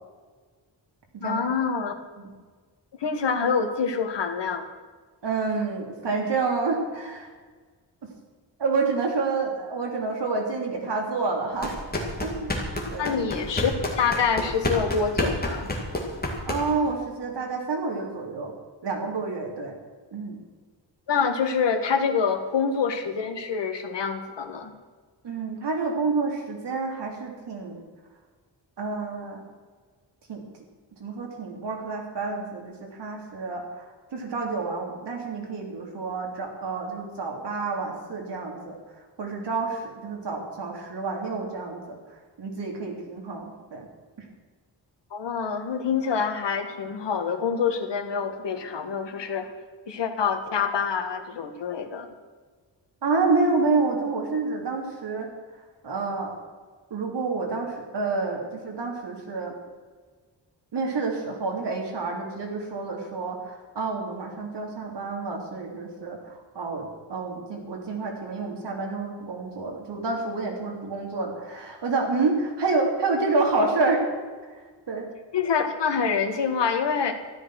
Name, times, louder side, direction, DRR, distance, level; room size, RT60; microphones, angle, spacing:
voice 1, 1.2-2.0 3.0-4.7 13.0-13.7 14.0-15.7 21.1-24.7 45.1-49.5 49.9-52.1 75.3-77.2, left 6 dB, 70° left, 7 dB, 1.7 m, -26 dB
voice 2, 5.2-7.3 8.0-8.1 8.6-11.8 12.2-12.6 12.9-13.2 16.5-18.5 18.8-19.7 20.1-20.5 25.2-27.8 28.8-29.4 30.3-30.4 31.0-33.8 34.1-38.8 39.2-42.0 42.4-43.9 53.0-55.3 55.8-56.3 56.9-59.5 60.7-74.2 74.5-74.6 74.9-75.1, right 3 dB, 65° right, 0 dB, 3.5 m, -28 dB
sound 1, 11.6-16.9, left 1 dB, 20° left, 2.5 m, -29 dB
13.5 x 12.0 x 6.4 m, 1.5 s
wide cardioid pair, 180°, 44 cm